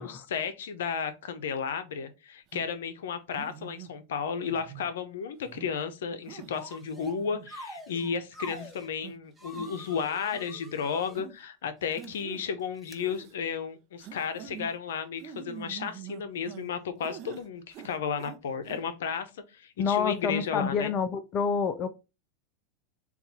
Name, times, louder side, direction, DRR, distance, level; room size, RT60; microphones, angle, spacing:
voice 1, 0.0-20.9, left 6 dB, 85° left, 0.6 m, -33 dB
sound 1, 2.5-2.7 3.3-3.9 4.4-4.9 5.4-5.7 6.3-6.5 7.0-7.5 8.0-8.1 8.5-8.7 9.0-9.1 9.5-9.9 10.3-10.4 11.1-11.3 12.0-12.5 13.0-13.3 14.0-14.7 15.2-16.7 17.0-17.4 17.7-18.4 18.6-18.8, right 9 dB, 45° right, 0.6 m, -45 dB
sound 2, 6.5-7.2 7.5-8.9 9.4-11.2 11.8-12.1 12.8-13.0, equal, ahead, 0.8 m, -46 dB
voice 2, 19.8-21.9, left 6 dB, 40° left, 0.4 m, -28 dB
4.2 x 2.4 x 4.0 m
hypercardioid pair, 115°, 0 cm